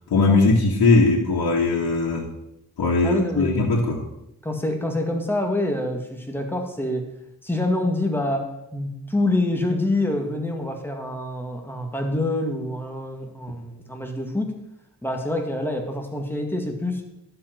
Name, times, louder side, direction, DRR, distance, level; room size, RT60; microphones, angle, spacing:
voice 1, 0.1-2.3 2.8-4.0, left 3 dB, 90° left, -3 dB, 2.0 m, -19 dB
voice 2, 3.0-3.7 4.4-7.1 7.4-14.5 15.0-17.0, left 1 dB, 5° left, 2 dB, 2.2 m, -26 dB
12.0 x 7.9 x 6.1 m, 0.85 s
cardioid pair, 100°, 36 cm